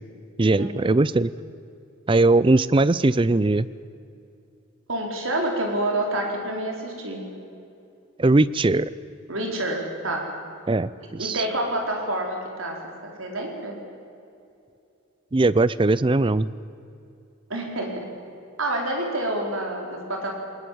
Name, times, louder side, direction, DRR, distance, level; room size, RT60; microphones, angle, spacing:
voice 1, 0.4-1.3 2.1-3.7 8.2-8.9 10.7-11.4 15.3-16.5, right 2 dB, 25° right, 18 dB, 0.4 m, -20 dB
voice 2, 4.9-7.2 9.3-10.3 11.2-13.8 17.5-18.1 18.6-20.3, right 1 dB, 75° right, 1 dB, 4.6 m, -28 dB
21.0 x 20.0 x 8.7 m, 2.6 s
head